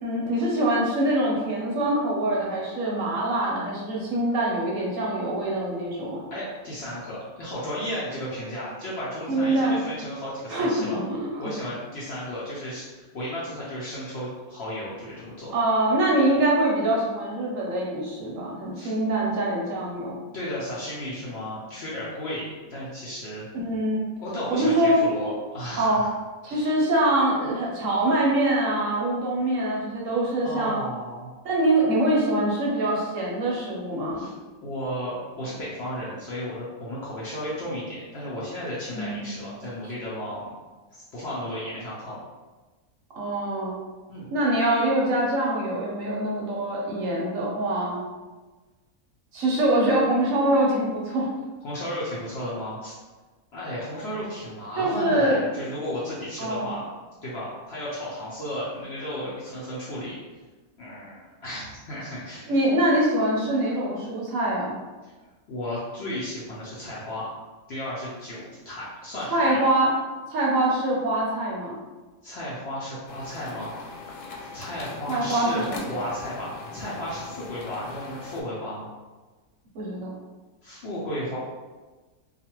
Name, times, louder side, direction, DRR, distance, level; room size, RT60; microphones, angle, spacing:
voice 1, 0.0-6.2 9.3-9.8 10.5-11.2 15.5-20.2 23.5-24.0 24.5-25.1 25.8-26.0 26.4-30.8 31.4-34.2 38.9-39.5 43.1-43.8 44.3-48.0 49.3-51.3 54.8-55.4 56.4-56.7 62.5-64.8 69.3-69.9 70.3-71.8 75.1-75.9 79.7-80.2, right 1 dB, 65° right, -4 dB, 1.0 m, -24 dB
voice 2, 6.3-11.0 11.4-15.5 18.7-18.9 20.3-23.5 24.2-26.1 26.4-26.7 30.4-31.3 34.2-34.3 34.6-40.5 40.9-42.2 44.1-44.3 51.6-52.9 53.5-56.8 57.2-60.2 60.8-62.5 65.0-65.1 65.5-67.3 67.7-69.6 72.2-73.7 74.4-78.9 80.6-81.4, equal, 60° left, -7 dB, 0.7 m, -34 dB
sound 1, 73.1-78.4, left 3 dB, 85° left, 1.1 m, -40 dB
2.5 x 2.4 x 2.9 m, 1.3 s
omnidirectional pair, 1.6 m